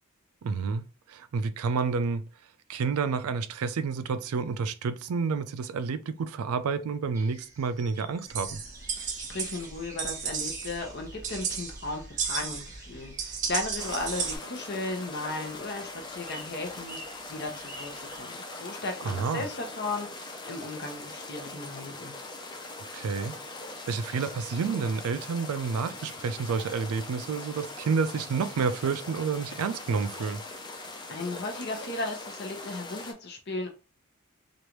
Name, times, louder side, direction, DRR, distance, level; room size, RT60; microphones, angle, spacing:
voice 1, 0.4-2.2 2.7-8.6 19.0-19.5 22.9-23.3 23.9-30.4, right 5 dB, 85° right, 0.4 m, -29 dB
sound 1, 7.1-18.2, right 1 dB, 15° right, 0.9 m, -51 dB
sound 2, 8.3-14.4, right 6 dB, 35° right, 0.5 m, -34 dB
voice 2, 9.0-17.0 17.3-22.1 31.1-33.7, left 2 dB, 50° left, 0.8 m, -36 dB
sound 3, 13.8-33.1, left 2 dB, 20° left, 0.4 m, -41 dB
3.1 x 2.5 x 3.0 m
head